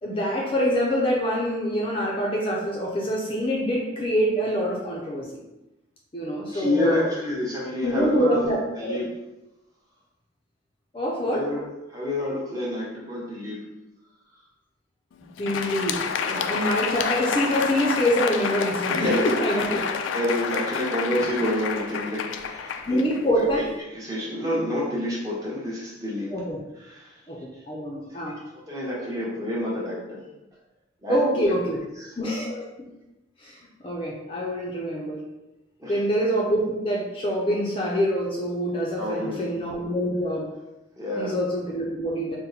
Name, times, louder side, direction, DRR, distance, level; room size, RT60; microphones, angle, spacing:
voice 1, 0.0-5.3 6.1-7.0 7.8-9.0 10.9-11.4 15.4-19.8 22.9-23.6 26.3-26.6 27.3-27.4 27.7-28.3 31.1-31.8 32.2-32.7 33.4-33.6 33.8-35.2 35.9-40.5 41.2-42.4, equal, 30° left, -3 dB, 0.5 m, -25 dB
voice 2, 6.5-8.4 8.8-9.0 11.3-11.6 11.9-13.6 18.9-23.7 23.9-26.3 26.8-27.2 28.2-28.3 28.7-30.2 31.0-31.5 32.0-32.1 35.8-36.0 39.0-39.5 41.0-41.3, left 1 dB, 20° right, -5 dB, 0.9 m, -28 dB
Crowd, 15.2-23.7, left 6 dB, 85° left, 0.3 m, -29 dB
4.3 x 2.1 x 3.9 m, 0.99 s
head